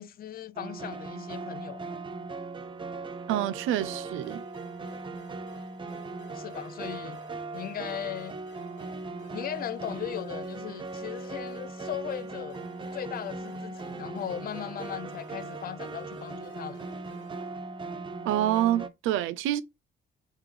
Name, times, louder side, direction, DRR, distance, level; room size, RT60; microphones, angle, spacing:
voice 1, 0.0-1.8 6.3-7.2 7.5-8.4 9.3-12.7 12.9-16.8, left 10 dB, 50° left, 0.4 m, -38 dB
sound 1, 0.6-18.9, right 3 dB, 25° right, 0.5 m, -39 dB
voice 2, 3.3-4.4 18.2-19.6, right 12 dB, 90° right, 0.4 m, -27 dB
sound 2, 4.2-17.6, left 7 dB, 75° left, 1.1 m, -56 dB
3.4 x 3.3 x 3.2 m
cardioid pair, 90°, 20 cm